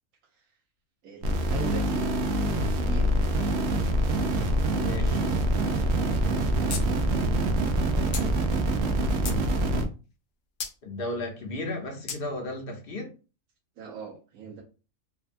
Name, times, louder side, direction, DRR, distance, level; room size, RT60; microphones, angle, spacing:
voice 1, 1.0-2.1 2.7-3.1 7.8-8.4 13.8-14.6, right 5 dB, 80° right, -2 dB, 1.1 m, -40 dB
sound 1, 1.2-9.9, right 1 dB, 65° right, 0.7 m, -25 dB
voice 2, 4.8-5.3 10.8-13.1, left 2 dB, 50° left, 3 dB, 0.8 m, -34 dB
sound 2, 6.7-6.8 7.1-7.2 8.1-8.3 8.9-9.4 10.6-10.7 12.1-12.2, left 6 dB, 90° left, 0.4 m, -34 dB
3.3 x 2.2 x 2.5 m, 0.33 s
omnidirectional pair, 1.5 m